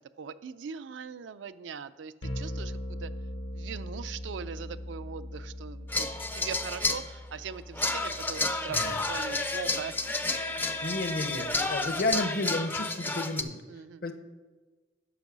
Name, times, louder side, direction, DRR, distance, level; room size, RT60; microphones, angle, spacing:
voice 1, 0.0-3.1 3.5-6.1 6.3-9.9 11.5-11.7 13.7-14.0, right 6 dB, 80° right, 13 dB, 0.4 m, -40 dB
sound 1, 2.2-12.3, left 1 dB, 85° left, 1.1 m, -42 dB
sound 2, 5.9-7.1 7.7-13.4, left 2 dB, 10° left, 0.4 m, -31 dB
voice 2, 8.7-9.2 10.5-13.6 14.0-14.1, left 2 dB, 50° left, 9 dB, 0.7 m, -32 dB
9.1 x 5.3 x 6.1 m, 1.3 s
head